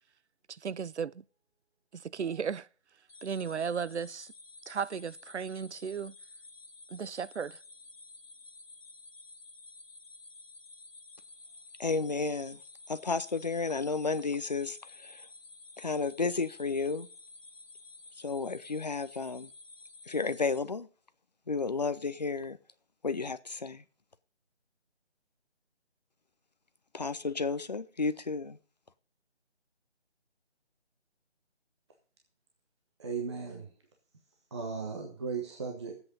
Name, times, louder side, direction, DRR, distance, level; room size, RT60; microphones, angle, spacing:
voice 1, 0.5-1.2 1.9-2.7 3.2-4.3 4.7-6.1 6.9-7.6, right 6 dB, 80° right, 0.6 m, -35 dB
sound 1, 3.1-20.6, left 3 dB, 60° left, 1.6 m, -52 dB
voice 2, 11.8-12.6 12.9-15.3 15.8-17.1 18.2-19.5 20.1-20.9 21.5-22.6 23.0-23.8 26.9-28.6, left 4 dB, 40° left, 0.6 m, -32 dB
voice 3, 33.0-33.7 34.5-36.0, right 5 dB, 25° right, 1.1 m, -36 dB
14.5 x 8.0 x 5.3 m
figure-of-eight pair, 160°, 34 cm